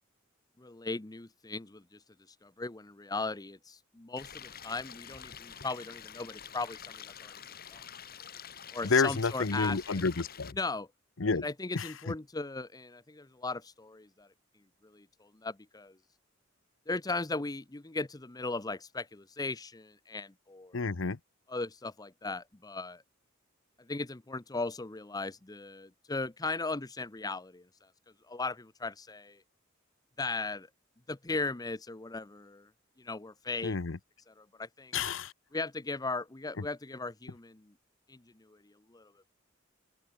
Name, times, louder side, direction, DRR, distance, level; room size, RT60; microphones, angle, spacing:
voice 1, 0.6-2.0 2.4-7.3 7.7-7.8 8.7-10.0 10.5-10.9 11.4-14.3 14.8-15.9 16.9-20.8 21.5-23.0 23.9-27.6 28.3-29.4 30.2-30.7 31.1-32.7 33.0-33.8 34.3-34.9 35.5-37.6 38.1-38.2 38.5-38.6 38.9-39.1, left 3 dB, 20° left, 0.8 m, -37 dB
Stream, 4.2-10.5, left 8 dB, 50° left, 2.3 m, -47 dB
voice 2, 8.8-10.6 11.2-11.4 11.7-12.1 20.7-21.2 33.6-34.0 34.9-35.3, left 4 dB, 80° left, 0.9 m, -30 dB
open air
head